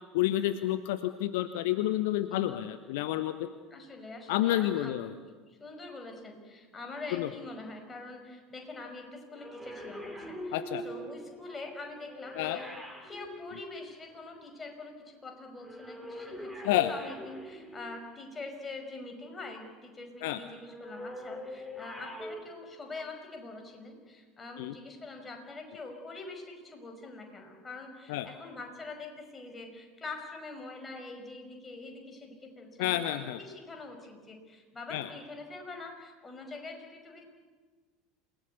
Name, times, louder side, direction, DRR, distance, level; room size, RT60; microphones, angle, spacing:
voice 1, 0.1-3.5 4.3-5.1 7.1-7.3 10.5-10.8 12.4-12.6 16.6-16.9 20.2-20.4 24.6-24.7 28.1-28.3 32.8-33.4 34.9-35.1, left 14 dB, 60° left, 12 dB, 0.8 m, -29 dB
voice 2, 3.7-4.9 5.5-12.7 13.1-33.2 33.5-37.2, left 3 dB, 20° left, 4 dB, 5.5 m, -44 dB
sound 1, 9.3-14.4 15.6-18.2 20.6-22.4, equal, ahead, 4.7 m, -43 dB
28.0 x 19.0 x 8.4 m, 1.4 s
figure-of-eight pair, 70°, 0 cm